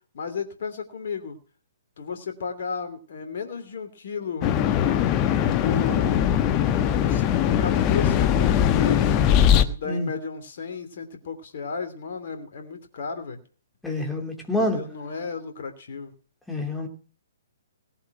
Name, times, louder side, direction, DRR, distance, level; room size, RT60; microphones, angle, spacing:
voice 1, 0.1-1.4 2.0-4.5 5.6-6.2 7.0-9.1 9.7-13.4 14.6-16.1, left 5 dB, 55° left, 6 dB, 2.9 m, -33 dB
sound 1, 4.4-9.6, left 9 dB, 25° left, 1.1 m, -21 dB
voice 2, 13.8-14.8 16.5-16.9, left 1 dB, 5° left, 2 dB, 3.0 m, -27 dB
18.5 x 7.9 x 6.0 m, 0.42 s
figure-of-eight pair, 125°, 0 cm